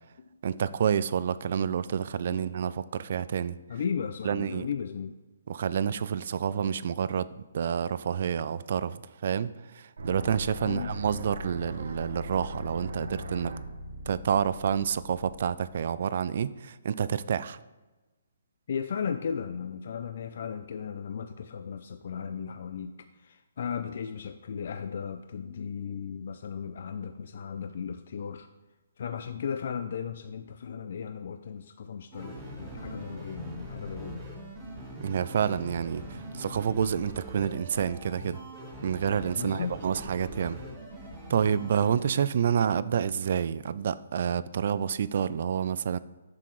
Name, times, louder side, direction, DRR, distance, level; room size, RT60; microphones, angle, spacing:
voice 1, 0.4-3.6 4.2-4.7 5.5-7.3 7.5-13.5 14.1-17.6 35.0-38.4 38.8-40.6 41.3-46.0, right 8 dB, 50° right, 0.3 m, -28 dB
voice 2, 2.3-2.6 3.7-5.2 10.6-10.9 18.7-22.9 23.2-28.5 29.0-34.2 39.3-39.8, left 7 dB, 55° left, 0.3 m, -36 dB
sound 1, 10.0-15.9, right 1 dB, 75° right, 0.9 m, -39 dB
sound 2, 32.1-42.0, equal, 10° right, 1.4 m, -42 dB
7.5 x 5.7 x 3.1 m
hypercardioid pair, 160°, 0 cm